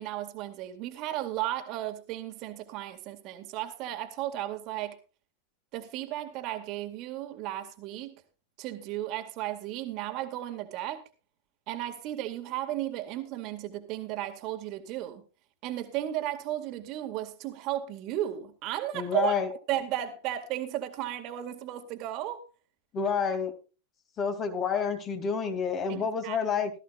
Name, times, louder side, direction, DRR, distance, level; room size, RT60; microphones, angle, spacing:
voice 1, 0.0-5.0 5.7-8.1 8.6-11.0 11.7-15.2 15.6-19.3 19.7-22.4 25.9-26.4, right 13 dB, 40° right, 2.2 m, -34 dB
voice 2, 18.9-19.5 22.9-23.5 24.2-26.7, left 6 dB, 30° left, 2.8 m, -29 dB
17.5 x 14.0 x 2.5 m
figure-of-eight pair, 90°, 0 cm